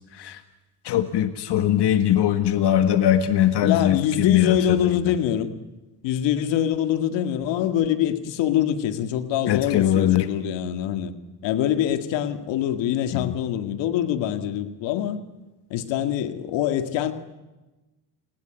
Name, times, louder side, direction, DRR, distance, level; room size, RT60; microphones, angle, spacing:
voice 1, 0.9-4.6 4.8-5.0 9.5-10.3 13.1-13.4, left 11 dB, 65° left, 9 dB, 1.8 m, -21 dB
voice 2, 3.6-5.5 6.0-11.1 11.4-15.2 15.7-17.1, left 10 dB, 85° left, 9 dB, 2.1 m, -24 dB
30.0 x 20.5 x 9.3 m, 1.1 s
supercardioid pair, 65°, 43 cm